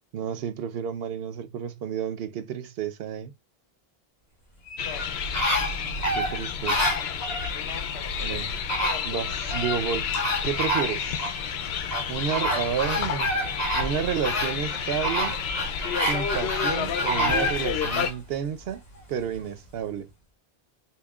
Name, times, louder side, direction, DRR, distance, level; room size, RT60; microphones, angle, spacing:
voice 1, 0.1-3.3 6.2-6.9 8.2-8.5 9.1-10.1 10.4-11.3 12.1-13.3 13.7-15.4 16.1-18.8 19.1-20.1, right 8 dB, 75° right, 0.8 m, -31 dB
sound 1, 4.7-7.5 8.3-8.4 8.7-9.8 10.1-11.3 11.9-18.1 18.6-18.7, equal, 40° left, 2.0 m, -28 dB
sound 2, 4.8-18.1, left 7 dB, 90° left, 0.9 m, -30 dB
5.4 x 2.2 x 2.3 m
omnidirectional pair, 1.0 m